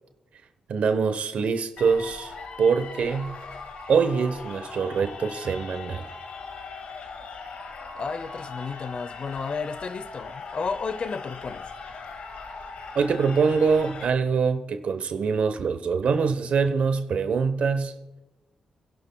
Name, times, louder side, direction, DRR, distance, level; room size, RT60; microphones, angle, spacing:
voice 1, 0.7-2.3 2.6-3.4 3.9-6.0 12.9-17.9, right 5 dB, 70° right, 0.9 m, -24 dB
sound 1, 1.8-14.1, left 4 dB, 80° left, 1.8 m, -40 dB
voice 2, 7.9-11.7, left 5 dB, 50° left, 0.7 m, -32 dB
26.5 x 11.0 x 2.3 m
cardioid pair, 85°, 2 cm